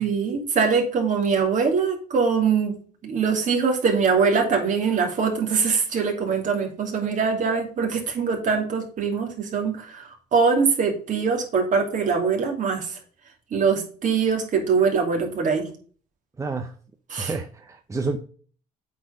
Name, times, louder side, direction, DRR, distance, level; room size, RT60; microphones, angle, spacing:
voice 1, 0.0-2.7 3.0-13.0 13.5-15.7 17.1-17.3, right 5 dB, 50° right, 2 dB, 2.7 m, -23 dB
voice 2, 16.4-16.7 17.2-18.2, right 3 dB, 20° right, 5 dB, 0.7 m, -29 dB
8.5 x 4.6 x 5.1 m, 0.43 s
cardioid pair, 110°, 17 cm